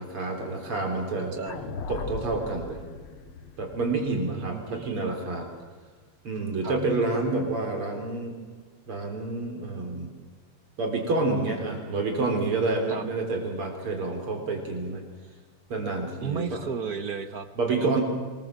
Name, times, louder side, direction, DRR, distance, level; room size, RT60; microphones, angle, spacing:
voice 1, 0.0-1.3 1.9-2.8 3.6-5.5 6.2-8.4 8.9-10.1 10.8-15.0 15.7-16.6 17.6-18.0, right 3 dB, 80° right, 3 dB, 4.6 m, -28 dB
voice 2, 1.2-1.6 4.1-5.1 6.6-6.8 12.9-13.0 16.2-17.5 17.8-18.0, right 6 dB, 50° right, 10 dB, 1.4 m, -34 dB
sound 1, 1.5-5.7, left 4 dB, 80° left, 2.6 m, -39 dB
25.0 x 20.5 x 7.5 m, 1.5 s
omnidirectional pair, 2.4 m